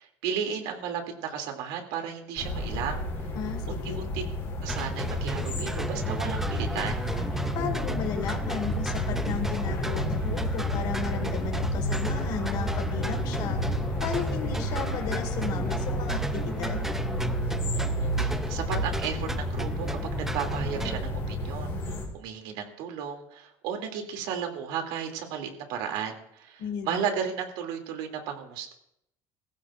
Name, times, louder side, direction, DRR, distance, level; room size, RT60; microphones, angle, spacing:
voice 1, 0.0-3.3 3.7-4.2 4.6-7.0 17.7-28.7, right 7 dB, 85° right, 4 dB, 2.7 m, -34 dB
sound 1, 2.4-22.1, equal, 30° left, 4.1 m, -30 dB
voice 2, 3.4-4.0 7.5-16.8 26.6-27.0, left 7 dB, 55° left, 5 dB, 1.7 m, -35 dB
sound 2, 4.7-21.0, right 1 dB, 5° right, 0.5 m, -36 dB
22.0 x 15.0 x 2.5 m, 0.75 s
cardioid pair, 170°, 9 cm